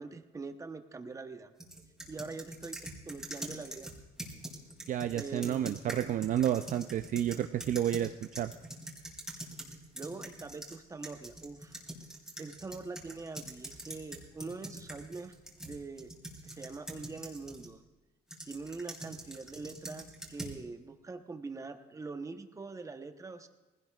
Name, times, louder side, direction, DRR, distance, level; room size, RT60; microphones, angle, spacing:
voice 1, 0.0-1.5 2.1-3.9 5.1-6.1 9.9-11.8 12.4-15.3 15.6-16.1 16.4-17.8 18.4-23.5, right 4 dB, 20° right, 7 dB, 0.9 m, -43 dB
sound 1, 1.6-10.8 11.0-17.7 18.3-20.6, right 1 dB, 5° right, 2.8 m, -45 dB
voice 2, 4.9-8.5, right 11 dB, 50° right, 9 dB, 0.4 m, -31 dB
19.5 x 16.5 x 2.4 m, 1.1 s
cardioid pair, 110°, 17 cm